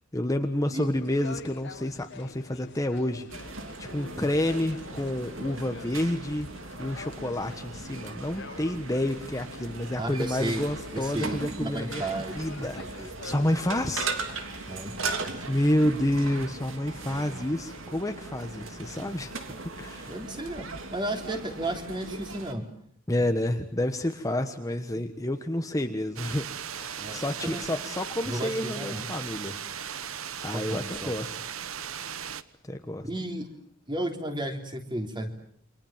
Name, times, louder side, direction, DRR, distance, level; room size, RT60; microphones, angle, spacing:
voice 1, 0.1-3.3 3.8-6.5 6.8-14.4 15.4-19.4 19.8-20.1 23.1-29.6 29.9-30.1 30.4-31.3 32.6-33.1, left 1 dB, 15° left, 6 dB, 1.3 m, -29 dB
sound 1, 0.9-14.9, left 3 dB, 60° left, 1.3 m, -47 dB
sound 2, 3.3-22.5, right 3 dB, 70° right, 3.1 m, -38 dB
voice 2, 9.9-10.6 10.9-12.3 12.7-13.1 14.7-15.3 17.1-17.5 20.1-22.6 27.0-27.6 28.2-29.1 30.5-31.1 33.0-33.5 33.9-35.3, right 1 dB, 25° right, 5 dB, 3.5 m, -34 dB
sound 3, 26.2-32.4, right 8 dB, 90° right, 1.2 m, -37 dB
29.0 x 25.5 x 7.4 m, 0.64 s
head